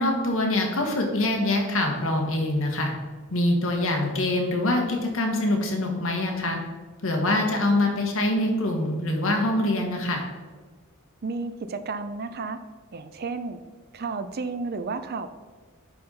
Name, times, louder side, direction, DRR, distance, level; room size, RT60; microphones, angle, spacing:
voice 1, 0.0-2.9 3.3-6.6 7.0-10.2, left 1 dB, 65° left, 1 dB, 1.3 m, -24 dB
voice 2, 11.2-12.6 12.9-13.6 13.9-15.3, right 4 dB, 45° right, 11 dB, 0.5 m, -32 dB
9.6 x 4.2 x 3.9 m, 1.4 s
head